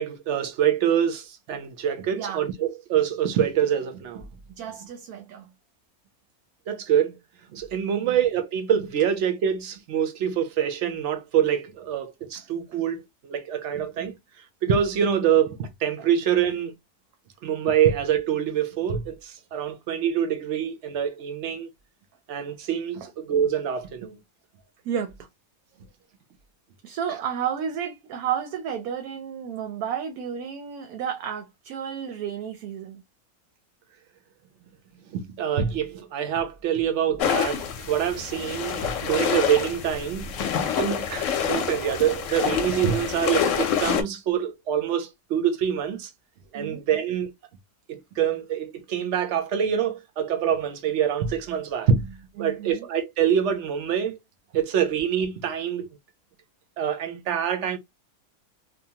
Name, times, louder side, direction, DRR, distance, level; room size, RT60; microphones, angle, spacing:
voice 1, 0.0-4.2 6.7-7.2 7.5-14.2 14.6-16.7 17.4-21.7 22.3-24.2 35.1-40.3 40.8-46.1 46.5-47.3 47.9-54.2 54.5-55.9 56.8-57.8, right 9 dB, 65° right, 0.8 m, -25 dB
voice 2, 2.1-2.4 4.6-5.5 7.9-8.1 12.3-12.4 16.0-16.1 19.7-19.8 23.0-23.1 24.8-25.1 26.8-33.0 46.5-46.8 52.4-52.9, right 8 dB, 90° right, 1.1 m, -32 dB
sound 1, 37.2-44.0, left 8 dB, 70° left, 0.9 m, -27 dB
2.8 x 2.1 x 2.7 m
omnidirectional pair, 1.5 m